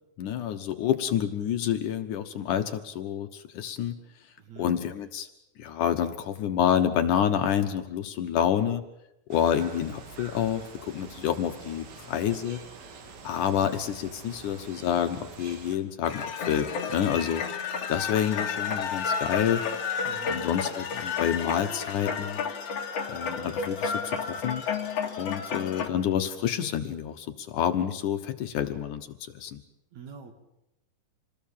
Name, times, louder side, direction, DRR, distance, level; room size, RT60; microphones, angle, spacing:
voice 1, 0.2-4.0 4.6-5.3 5.6-8.8 9.3-12.6 13.2-17.4 17.9-19.6 20.3-22.4 23.1-24.6 25.2-29.1 29.3-29.6, left 9 dB, 70° left, 7 dB, 2.4 m, -28 dB
voice 2, 4.4-4.7 20.0-20.4 29.9-30.3, right 6 dB, 55° right, 6 dB, 3.1 m, -44 dB
sound 1, 9.3-15.8, right 4 dB, 90° right, 4.2 m, -46 dB
sound 2, 16.0-25.9, left 6 dB, 50° left, 2.7 m, -31 dB
27.0 x 20.0 x 7.4 m, 0.85 s
omnidirectional pair, 4.1 m